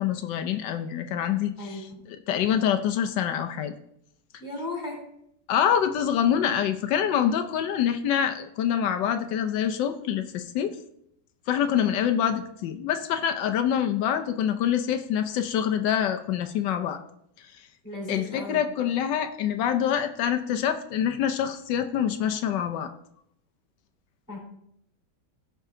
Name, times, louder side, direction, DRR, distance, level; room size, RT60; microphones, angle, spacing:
voice 1, 0.0-1.8 2.3-3.7 5.5-10.7 11.5-17.0 18.1-22.9, left 9 dB, 85° left, 7 dB, 1.4 m, -25 dB
voice 2, 1.6-2.0 4.4-5.0 17.8-18.6 24.3-24.4, left 2 dB, 10° left, -2 dB, 3.8 m, -35 dB
16.5 x 5.5 x 3.7 m, 0.73 s
omnidirectional pair, 1.9 m